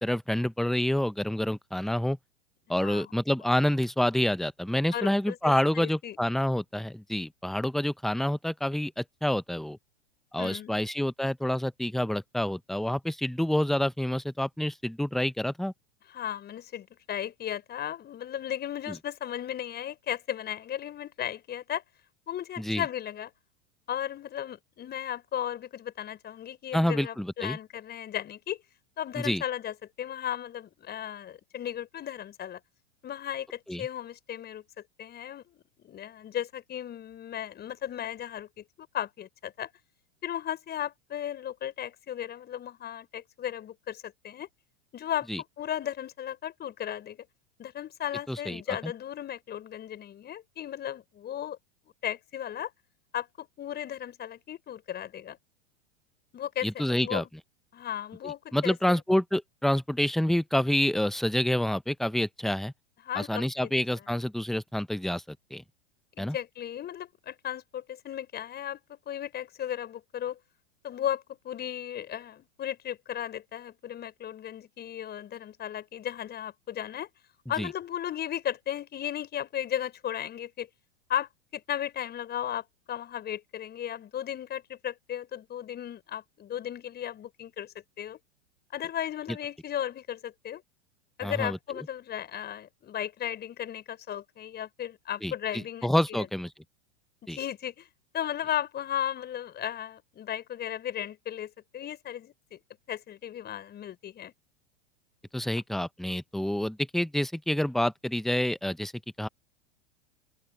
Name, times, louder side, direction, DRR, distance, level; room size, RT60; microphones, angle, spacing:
voice 1, 0.0-2.2 2.7-9.8 10.3-15.7 18.9-19.0 22.6-22.8 26.7-27.6 29.2-29.4 33.7-33.9 45.3-45.4 48.3-48.9 56.6-57.2 58.2-62.7 63.1-65.6 66.2-66.4 77.6-77.7 91.2-91.6 95.2-96.5 97.3-97.4 105.3-108.9 109.2-109.3, left 1 dB, ahead, 1.0 m, -28 dB
voice 2, 2.8-3.1 4.9-6.2 10.4-10.8 16.1-21.8 22.3-23.3 23.9-28.6 29.0-32.6 33.0-39.7 40.2-44.5 44.9-45.3 45.6-47.3 47.6-51.6 52.0-52.7 53.1-55.4 56.3-57.3 57.7-59.0 63.0-63.7 64.1-64.2 66.1-70.4 70.8-77.1 77.5-80.7 81.1-88.2 88.7-90.6 91.2-96.3 97.3-97.9 98.1-102.6 102.9-104.3, left 10 dB, 30° left, 6.0 m, -35 dB
open air
figure-of-eight pair, 95°, 35 cm